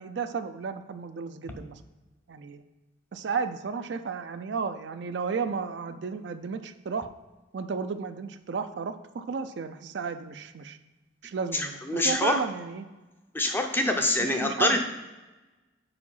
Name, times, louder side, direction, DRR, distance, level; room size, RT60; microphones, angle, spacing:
voice 1, 0.0-1.8 2.3-2.6 3.1-7.1 7.5-10.8 11.2-12.9 14.2-14.8, right 5 dB, 65° right, 9 dB, 0.4 m, -33 dB
voice 2, 11.5-12.4 13.3-14.8, left 2 dB, 10° left, 4 dB, 0.5 m, -25 dB
4.9 x 4.7 x 5.4 m, 1.1 s
head